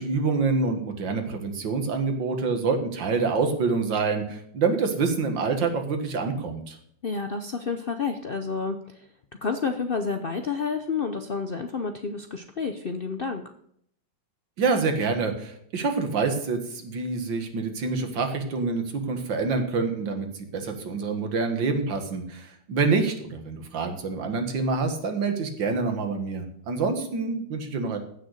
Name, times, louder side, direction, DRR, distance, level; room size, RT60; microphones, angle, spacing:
voice 1, 0.0-6.8 14.6-20.3 20.5-28.0, right 4 dB, 85° right, 6 dB, 2.3 m, -26 dB
voice 2, 7.0-9.1 9.4-13.5, left 5 dB, 55° left, 7 dB, 0.6 m, -30 dB
15.0 x 6.7 x 6.4 m, 0.69 s
omnidirectional pair, 2.0 m